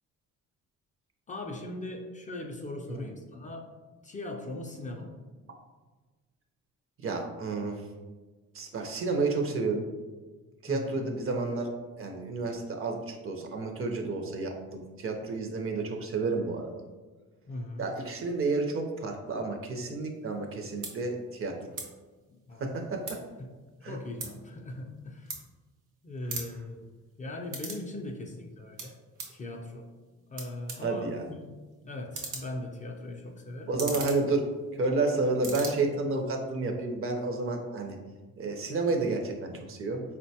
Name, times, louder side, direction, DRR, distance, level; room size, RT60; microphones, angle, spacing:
voice 1, 1.3-3.7 4.0-5.2 10.7-11.0 17.5-17.8 22.3-22.7 23.4-23.5 23.8-25.4 26.0-26.9 27.2-29.0 29.3-29.9 30.3-31.5 31.8-33.7, left 2 dB, 25° left, 1 dB, 0.4 m, -39 dB
voice 2, 7.0-7.8 8.5-9.9 10.6-11.7 12.0-16.7 17.8-21.6 22.6-23.2 23.8-24.0 30.8-31.2 33.7-34.5 34.8-38.0 38.4-40.0, right 3 dB, 45° right, 4 dB, 0.5 m, -30 dB
sound 1, 20.3-20.4 20.8-20.9 21.7-21.9 22.2-23.4 23.7-25.9 26.2-27.9 28.2-29.4 30.0-30.1 30.3-35.0 35.3-35.7, right 4 dB, 85° right, 0.7 m, -40 dB
3.9 x 2.1 x 2.7 m, 1.3 s
cardioid pair, 90°, 30 cm